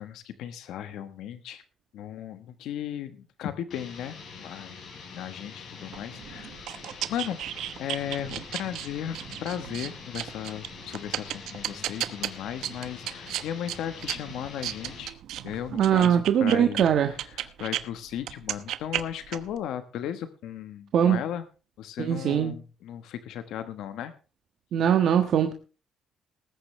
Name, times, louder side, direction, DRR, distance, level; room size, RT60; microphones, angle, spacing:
voice 1, 0.0-1.6 1.9-4.8 5.1-6.5 7.1-7.4 7.8-15.2 15.4-21.4 21.8-24.1, left 10 dB, 85° left, 10 dB, 1.2 m, -36 dB
sound 1, 3.7-15.1, left 5 dB, 60° left, 5.0 m, -45 dB
sound 2, 5.9-17.8 18.2-19.6, right 12 dB, 85° right, 1.1 m, -35 dB
voice 2, 15.7-17.1 20.9-21.2 22.0-22.5 24.7-25.5, right 9 dB, 65° right, 6 dB, 1.4 m, -21 dB
20.0 x 10.0 x 3.3 m, 0.35 s
cardioid pair, 135°, 0 cm